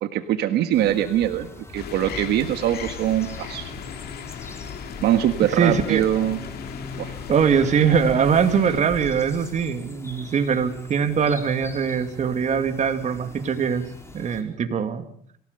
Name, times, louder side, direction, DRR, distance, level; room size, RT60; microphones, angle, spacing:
voice 1, 0.0-1.5 1.7-3.7 5.0-6.4 7.0-7.1, right 11 dB, 75° right, 8 dB, 1.5 m, -22 dB
sound 1, 0.7-14.4, left 2 dB, 15° left, 4.5 m, -42 dB
sound 2, 1.7-8.8, left 8 dB, 70° left, 2.7 m, -37 dB
voice 2, 5.6-6.0 7.3-13.8 14.1-15.0, right 7 dB, 45° right, 8 dB, 2.5 m, -22 dB
26.5 x 17.0 x 6.7 m, 0.62 s
cardioid pair, 110°, 17 cm